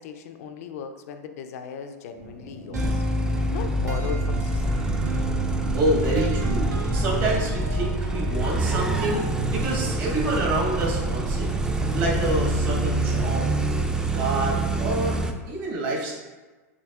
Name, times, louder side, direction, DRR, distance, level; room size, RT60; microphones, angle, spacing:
voice 1, 0.0-3.0 3.5-5.0, left 7 dB, 65° left, 7 dB, 0.4 m, -37 dB
sound 1, 2.1-11.0, equal, 65° right, 1.4 m, -43 dB
sound 2, 2.7-15.3, right 2 dB, 10° right, 0.3 m, -25 dB
sound 3, 2.7-8.5, right 3 dB, 90° right, 0.4 m, -36 dB
voice 2, 5.7-11.5 11.9-13.5 14.1-15.2 15.5-16.2, right 2 dB, 50° right, -3 dB, 1.4 m, -27 dB
6.2 x 2.6 x 2.3 m, 1.3 s
hypercardioid pair, 105°, 9 cm